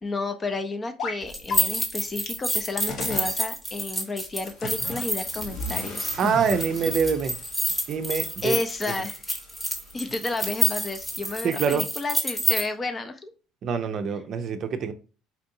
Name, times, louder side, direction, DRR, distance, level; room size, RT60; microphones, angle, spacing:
voice 1, 0.0-6.2 8.4-9.2 9.9-13.3, left 2 dB, 25° left, 0.6 m, -31 dB
sound 1, 1.0-1.2 1.5-1.6 2.2-2.3 2.9-3.4 4.6-5.1 6.2-6.9, left 3 dB, 60° left, 0.8 m, -33 dB
sound 2, 1.3-12.6, equal, 5° left, 1.0 m, -28 dB
Car / Engine starting / Accelerating revving vroom, 4.4-11.8, equal, 75° left, 1.2 m, -43 dB
voice 2, 6.2-7.4 7.9-8.6 11.4-11.9 13.6-14.9, right 6 dB, 50° right, 0.5 m, -25 dB
4.3 x 2.6 x 2.6 m
supercardioid pair, 95°, 0 cm